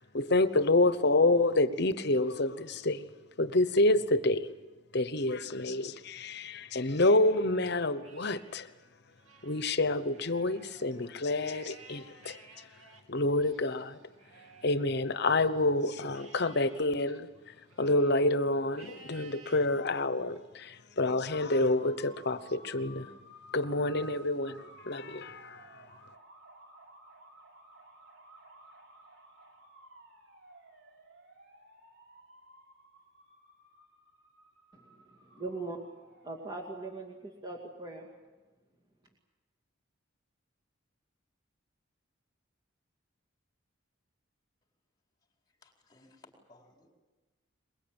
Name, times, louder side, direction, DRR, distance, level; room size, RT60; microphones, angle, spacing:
voice 1, 0.0-4.5 4.9-8.7 9.4-14.1 14.6-23.1 23.5-26.1, left 2 dB, 55° left, 1.0 m, -28 dB
Livestock farm animals working animals, 7.1-8.7 9.1-15.7 16.1-18.3 18.7-19.7 20.2-20.6 21.2-22.3, right 4 dB, 85° right, 2.7 m, -57 dB
sound 1, 21.2-36.7, right 1 dB, 65° right, 3.5 m, -55 dB
voice 2, 34.7-35.8 36.2-38.1, right 3 dB, 20° right, 2.4 m, -41 dB
voice 3, 45.6-46.9, left 2 dB, 20° left, 4.5 m, -59 dB
23.0 x 22.0 x 8.9 m
head